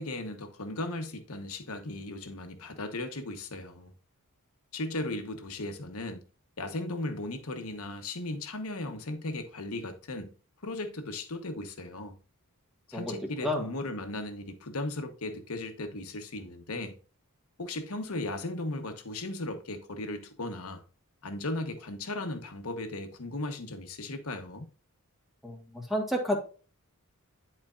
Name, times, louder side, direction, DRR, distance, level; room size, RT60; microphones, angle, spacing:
voice 1, 0.0-3.9 4.7-6.2 6.6-10.3 10.6-12.2 12.9-16.9 17.6-20.8 21.2-24.7, left 2 dB, 70° left, 1.1 m, -36 dB
voice 2, 25.4-26.4, left 1 dB, ahead, 1.6 m, -30 dB
11.0 x 4.4 x 2.5 m
head